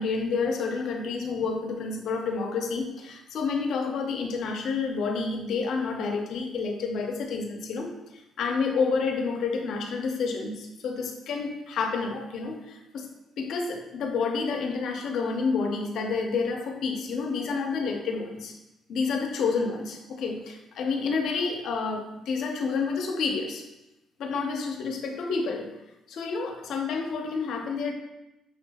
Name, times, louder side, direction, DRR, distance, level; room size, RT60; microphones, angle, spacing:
voice 1, 0.0-13.1 13.4-18.5 18.9-23.6 24.2-25.7 26.1-27.9, left 4 dB, 75° left, 3 dB, 0.6 m, -29 dB
5.7 x 2.1 x 3.4 m, 0.93 s
cardioid pair, 90°, 0 cm